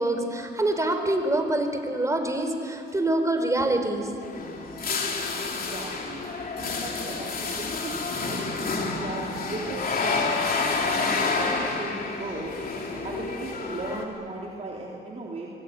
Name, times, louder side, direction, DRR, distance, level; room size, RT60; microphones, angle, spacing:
voice 1, 0.0-4.2, right 1 dB, 15° right, 5 dB, 4.0 m, -25 dB
sound 1, 4.2-14.0, left 4 dB, 45° left, 3.4 m, -29 dB
voice 2, 5.4-6.2 6.6-10.3 10.9-12.6 12.9-15.5, right 2 dB, 35° right, -3 dB, 3.8 m, -37 dB
24.0 x 22.0 x 9.5 m, 2.7 s
cardioid pair, 90°, 20 cm